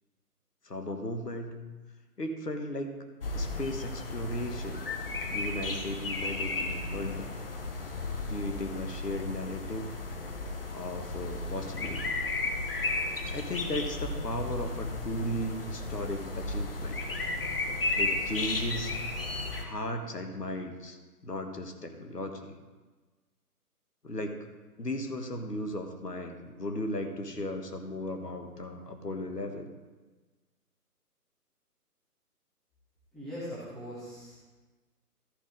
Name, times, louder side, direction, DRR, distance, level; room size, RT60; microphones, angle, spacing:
voice 1, 0.6-1.6 2.2-3.1 3.3-4.8 5.3-7.3 8.2-10.0 10.7-12.2 13.3-17.0 17.9-18.9 19.6-22.5 24.0-24.4 24.8-29.7, left 1 dB, 80° left, 5 dB, 1.5 m, -36 dB
sound 1, 3.2-19.6, left 2 dB, 35° left, 1.1 m, -34 dB
voice 2, 33.1-34.4, equal, ahead, -11 dB, 1.9 m, -40 dB
13.5 x 5.6 x 4.9 m, 1.3 s
figure-of-eight pair, 145°, 47 cm